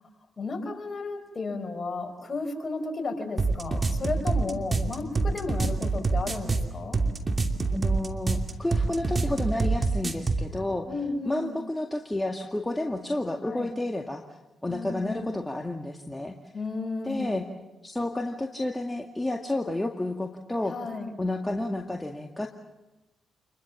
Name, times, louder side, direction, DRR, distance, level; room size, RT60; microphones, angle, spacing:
voice 1, 0.4-7.0 10.9-11.6 13.4-13.7 14.7-15.3 16.5-17.4 20.7-21.1, left 3 dB, 40° left, 5 dB, 5.1 m, -33 dB
sound 1, 3.4-10.5, right 3 dB, 35° right, 2.8 m, -26 dB
voice 2, 7.7-10.9 11.3-14.2 14.6-16.3 17.0-17.5 17.8-20.8 21.2-22.5, left 1 dB, 15° left, 3 dB, 2.1 m, -30 dB
28.0 x 22.0 x 7.4 m, 1.0 s
hypercardioid pair, 45°, 0 cm